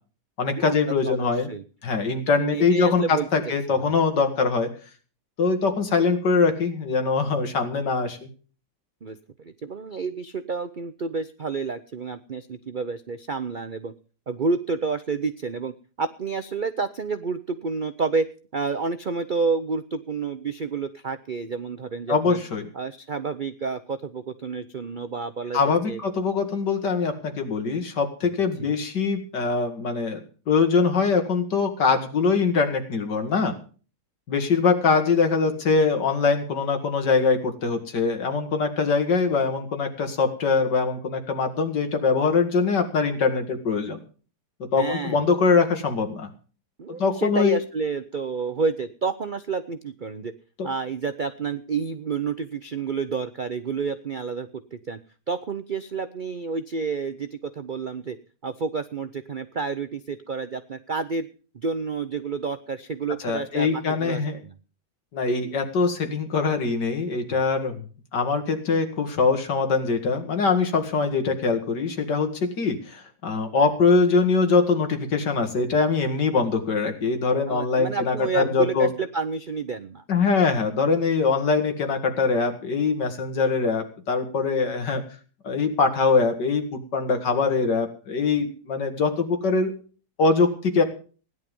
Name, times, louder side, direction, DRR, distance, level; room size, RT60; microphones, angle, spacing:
voice 1, 0.4-1.5 1.8-4.7 5.4-8.3 22.1-22.7 25.5-33.6 34.3-44.0 44.7-46.3 46.9-47.6 50.6-50.7 63.2-64.4 65.1-67.8 68.1-78.9 80.1-85.0 85.4-89.7 90.2-90.8, left 4 dB, 70° left, 7 dB, 2.7 m, -23 dB
voice 2, 1.0-1.6 2.4-3.3 3.7-3.9 9.0-13.9 14.3-18.3 18.5-22.4 22.7-26.0 28.6-28.8 44.8-45.2 46.8-50.3 50.6-55.0 55.3-58.2 58.4-61.3 61.5-64.5 77.5-80.0, right 4 dB, 55° right, 10 dB, 0.5 m, -29 dB
17.0 x 11.0 x 5.3 m, 0.39 s
omnidirectional pair, 1.9 m